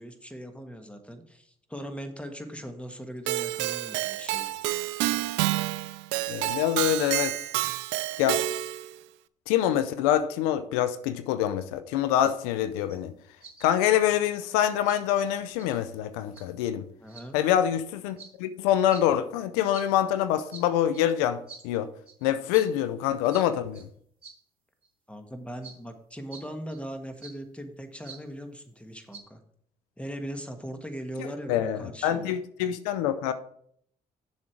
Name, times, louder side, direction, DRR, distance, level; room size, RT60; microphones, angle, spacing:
voice 1, 0.0-4.5 17.0-17.4 25.1-29.4 30.0-32.4, equal, 5° left, 1.4 m, -39 dB
Keyboard (musical), 3.3-8.9, right 16 dB, 75° right, 0.4 m, -29 dB
voice 2, 6.3-7.4 8.2-8.4 9.5-13.1 13.6-16.8 17.3-21.9 22.2-23.9 31.2-33.3, left 11 dB, 80° left, 0.5 m, -25 dB
sound 1, 12.8-13.0 13.4-13.8 14.3-14.4 14.8-15.0 15.6-15.8 16.3-16.5 17.1-17.3 18.2-18.3 18.9-19.0 19.7-19.9 20.5-20.6 20.9-21.1 21.5-21.7 22.1-22.2 22.5-22.7 23.2-23.5 23.7-23.8 24.2-24.4 24.8-24.9 25.6-25.8 26.3-26.4 26.7-26.8 27.1-27.3 28.0-28.2 29.1-29.2, right 4 dB, 30° right, 3.2 m, -46 dB
7.1 x 6.1 x 4.9 m
hypercardioid pair, 45°, 19 cm